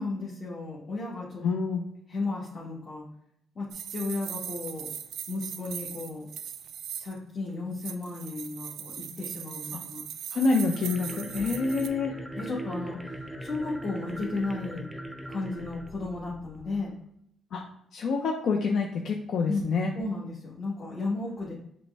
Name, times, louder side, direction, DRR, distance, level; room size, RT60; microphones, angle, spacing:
voice 1, 0.0-1.4 2.1-3.1 3.5-4.9 5.3-6.3 7.0-10.0 11.3-11.4 12.3-14.9 15.3-16.9 19.4-19.7 19.9-21.5, left 3 dB, 40° left, -5 dB, 1.2 m, -34 dB
voice 2, 1.4-1.8 10.3-12.1 17.5-17.6 17.9-19.9, left 4 dB, 70° left, 0 dB, 0.5 m, -27 dB
sound 1, 3.7-7.2 7.7-11.9, right 9 dB, 75° right, 0.3 m, -39 dB
sound 2, 10.6-16.8, right 1 dB, ahead, 0.6 m, -40 dB
5.1 x 2.1 x 3.4 m, 0.74 s
cardioid pair, 90°, 0 cm